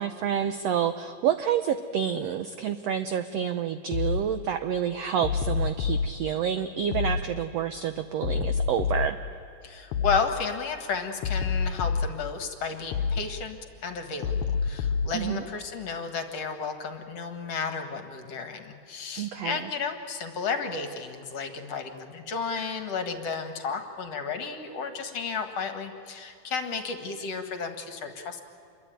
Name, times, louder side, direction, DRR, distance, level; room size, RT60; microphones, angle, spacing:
voice 1, 0.0-9.2 15.1-15.4 19.2-19.7, right 9 dB, 90° right, 10 dB, 1.4 m, -28 dB
sound 1, 3.9-4.3 5.2-6.1 6.9-7.3 8.2-9.1 9.9-10.3 11.2-12.1 12.9-13.3 14.2-15.1, left 6 dB, 70° left, 2.1 m, -27 dB
voice 2, 9.6-13.6 13.8-14.3 14.6-28.4, left 5 dB, 50° left, 7 dB, 2.4 m, -33 dB
27.5 x 23.0 x 9.2 m, 2.6 s
omnidirectional pair, 4.0 m